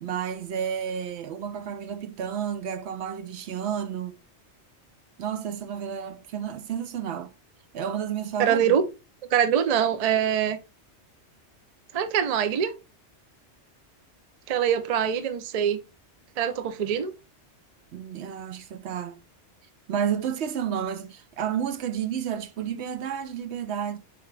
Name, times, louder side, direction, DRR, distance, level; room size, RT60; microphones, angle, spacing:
voice 1, 0.0-4.1 5.2-7.3 7.7-8.7 17.9-19.2 19.9-24.0, right 8 dB, 75° right, 0.9 m, -31 dB
voice 2, 8.4-8.9 9.3-10.6 11.9-12.7 14.5-15.8 16.4-17.1, right 8 dB, 50° right, 0.4 m, -24 dB
4.8 x 3.5 x 3.2 m
omnidirectional pair, 1.2 m